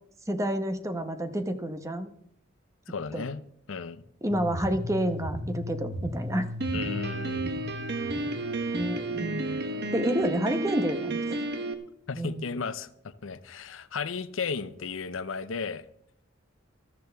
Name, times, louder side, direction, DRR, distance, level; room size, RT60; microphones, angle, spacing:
voice 1, 0.3-2.1 3.1-3.2 4.2-6.5 8.7-9.6 9.9-11.2 12.1-12.5, right 1 dB, 15° right, 1.0 m, -29 dB
voice 2, 2.9-3.4 3.7-4.0 6.7-7.5 12.1-15.9, left 5 dB, 85° left, 0.7 m, -34 dB
sound 1, 4.3-10.3, left 1 dB, 40° right, 2.9 m, -37 dB
Piano, 6.6-11.7, right 2 dB, 55° right, 1.1 m, -32 dB
13.5 x 13.5 x 3.5 m
head